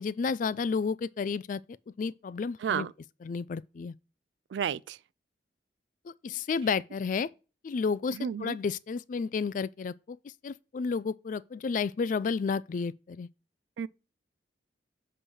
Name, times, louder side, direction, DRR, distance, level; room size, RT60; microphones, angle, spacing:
voice 1, 0.0-1.6 2.0-2.9 3.2-3.9 6.1-7.3 7.6-10.2 10.4-13.3, left 5 dB, 45° left, 0.3 m, -31 dB
voice 2, 2.6-2.9 4.5-5.0 8.1-8.6 13.8-13.9, right 7 dB, 75° right, 0.3 m, -31 dB
7.7 x 3.2 x 6.0 m
head